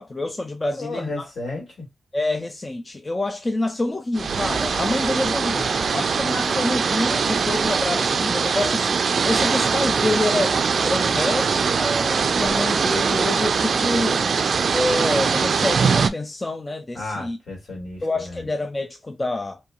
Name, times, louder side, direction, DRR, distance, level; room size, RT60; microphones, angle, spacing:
voice 1, 0.0-1.3 2.1-14.3 14.7-17.4 18.0-19.6, left 2 dB, 25° left, 0.3 m, -27 dB
voice 2, 0.7-1.7 5.4-6.4 16.9-18.4, left 2 dB, 65° left, 1.9 m, -34 dB
sound 1, 4.2-16.1, right 5 dB, 60° right, 0.3 m, -22 dB
3.0 x 2.6 x 2.3 m
wide cardioid pair, 110°, 0 cm